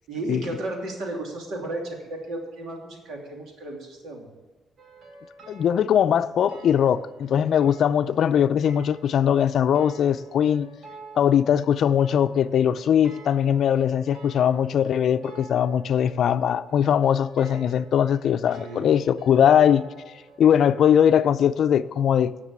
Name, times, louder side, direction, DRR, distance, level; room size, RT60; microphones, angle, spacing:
voice 1, 0.1-4.3 18.6-18.9, right 2 dB, 80° right, 2.8 m, -34 dB
sound 1, 4.8-21.0, right 2 dB, 60° right, 2.1 m, -48 dB
voice 2, 5.5-10.7 11.2-19.9 20.4-22.3, left 9 dB, 65° left, 0.4 m, -20 dB
10.5 x 6.7 x 8.2 m
cardioid pair, 90°, 0 cm